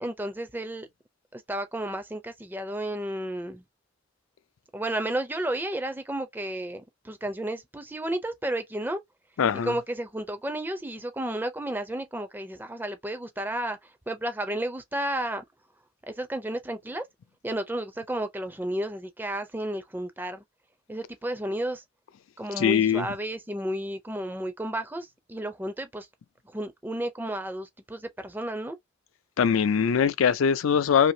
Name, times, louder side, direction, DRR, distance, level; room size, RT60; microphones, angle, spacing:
voice 1, 0.0-0.9 1.3-3.6 4.7-9.0 9.6-15.4 16.1-17.1 17.4-20.4 20.9-21.8 22.4-26.1 26.4-28.8, right 1 dB, 10° right, 0.4 m, -32 dB
voice 2, 9.4-9.7 22.6-23.1 29.4-31.1, left 7 dB, 85° left, 0.4 m, -22 dB
2.7 x 2.7 x 2.6 m
head